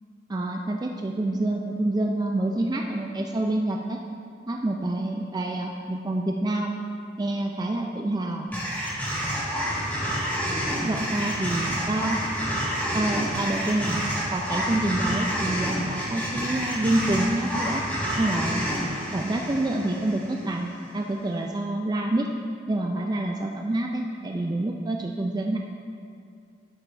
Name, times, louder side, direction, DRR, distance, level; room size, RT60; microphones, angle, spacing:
voice 1, 0.3-4.0 4.5-6.8 7.2-8.5 10.8-12.2 12.9-14.0 14.3-17.8 18.2-18.6 19.1-22.3 22.7-25.6, right 1 dB, 20° right, 1 dB, 0.4 m, -27 dB
sound 1, 8.5-20.8, equal, 10° left, 1.7 m, -29 dB
14.0 x 6.6 x 2.6 m, 2.4 s
head